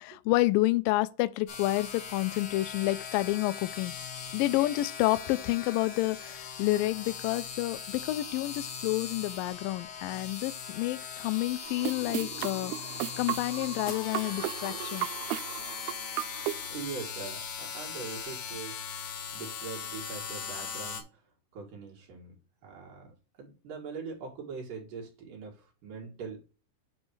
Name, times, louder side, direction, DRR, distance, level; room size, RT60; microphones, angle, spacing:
voice 1, 0.0-3.9 4.3-15.1, left 18 dB, 85° left, 2.0 m, -29 dB
sound 1, 1.5-21.0, left 7 dB, 55° left, 2.0 m, -40 dB
sound 2, 11.6-16.7, right 15 dB, 85° right, 2.5 m, -36 dB
voice 2, 16.7-18.8 19.3-21.2 21.5-22.4 22.6-26.4, right 5 dB, 60° right, 3.8 m, -42 dB
9.5 x 3.3 x 4.6 m
omnidirectional pair, 4.4 m